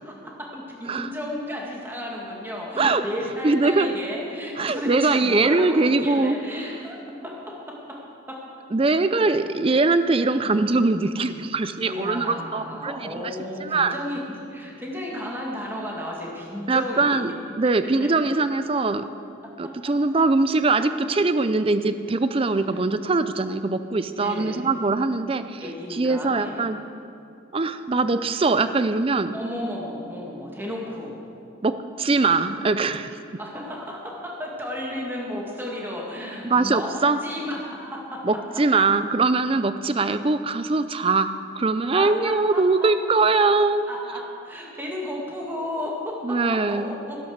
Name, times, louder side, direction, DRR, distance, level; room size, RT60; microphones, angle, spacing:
voice 1, 0.0-7.0 7.2-8.0 8.3-8.4 11.8-17.2 17.9-18.1 19.6-19.7 22.7-22.8 24.2-24.7 25.6-26.6 29.3-31.1 33.4-36.9 37.2-38.2 41.9-42.9 43.9-47.2, left 1 dB, 10° right, -2 dB, 2.1 m, -33 dB
voice 2, 3.4-3.9 4.6-6.3 8.7-13.3 13.6-13.9 16.7-19.0 19.6-26.8 27.5-29.3 31.6-33.1 36.4-37.2 38.2-43.9 46.2-46.9, right 3 dB, 25° right, 11 dB, 0.5 m, -22 dB
13.0 x 11.0 x 6.5 m, 2.5 s
head